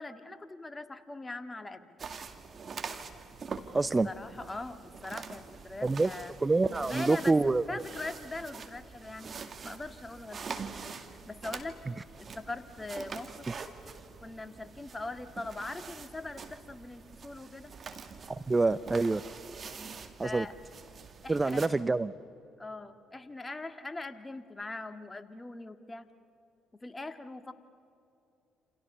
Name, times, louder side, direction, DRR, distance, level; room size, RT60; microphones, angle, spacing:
voice 1, 0.0-1.9 4.0-6.3 6.8-9.4 9.6-10.6 11.1-11.8 12.2-13.5 14.2-17.7 20.2-20.5 21.2-22.0 22.6-26.1 26.8-27.5, left 2 dB, 20° left, 9 dB, 1.8 m, -41 dB
sound 1, 2.0-21.7, right 5 dB, 45° right, 2.2 m, -45 dB
voice 2, 3.7-4.1 5.8-6.1 6.4-7.8 18.5-19.2 20.2-20.5 21.3-22.1, right 3 dB, 25° right, 16 dB, 0.6 m, -26 dB
28.5 x 28.0 x 6.8 m, 2.7 s
hypercardioid pair, 50°, 0 cm